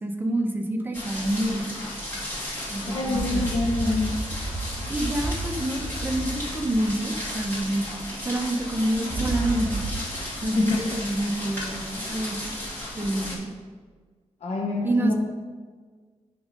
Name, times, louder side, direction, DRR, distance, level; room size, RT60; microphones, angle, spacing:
voice 1, 0.0-1.6 2.7-3.4 4.9-7.8 8.2-9.8 10.4-12.4 12.9-13.5 14.8-15.1, right 1 dB, 15° right, 2 dB, 0.8 m, -27 dB
sound 1, 0.9-13.3, left 1 dB, 15° left, 2.5 m, -34 dB
voice 2, 2.9-4.2 10.5-10.8 14.4-15.1, left 2 dB, 65° left, -3 dB, 0.9 m, -25 dB
sound 2, 3.1-7.7 8.6-10.0, right 2 dB, 40° right, 2.3 m, -32 dB
10.5 x 3.7 x 5.2 m, 1.5 s
wide cardioid pair, 155°, 12 cm